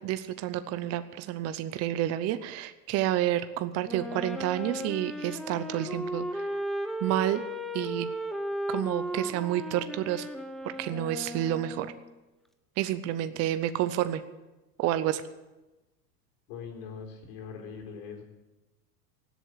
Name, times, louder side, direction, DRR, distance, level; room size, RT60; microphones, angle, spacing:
voice 1, 0.0-6.5 7.0-7.4 7.7-8.1 8.7-10.3 10.8-11.9 12.8-14.2 14.8-15.2, right 12 dB, 35° right, 12 dB, 0.7 m, -29 dB
Wind instrument woodwind instrument, 3.8-12.1, equal, ahead, 0.7 m, -35 dB
voice 2, 16.5-18.2, left 6 dB, 55° left, 2 dB, 4.6 m, -41 dB
17.5 x 8.2 x 7.7 m, 1.1 s
supercardioid pair, 125°, 46 cm